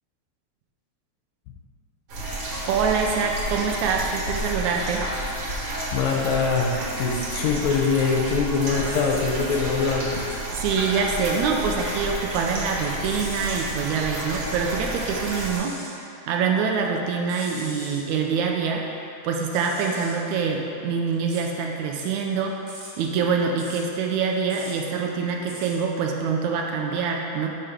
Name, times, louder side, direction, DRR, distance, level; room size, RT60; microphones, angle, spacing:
sound 1, 2.1-15.6, right 1 dB, 55° right, 2.0 m, -31 dB
voice 1, 2.7-5.0 10.5-15.8 16.3-18.9 19.2-22.6 23.0-27.5, right 5 dB, 80° right, 1 dB, 1.9 m, -25 dB
voice 2, 5.9-6.7 7.0-10.2, left 5 dB, 75° left, 0 dB, 1.9 m, -23 dB
sound 2, 7.0-7.6 8.0-9.6 10.9-11.8 12.1-13.8 15.1-16.0 16.5-18.1 19.3-25.9, right 1 dB, 40° right, 1.7 m, -43 dB
5.6 x 5.0 x 5.9 m, 2.7 s
omnidirectional pair, 3.5 m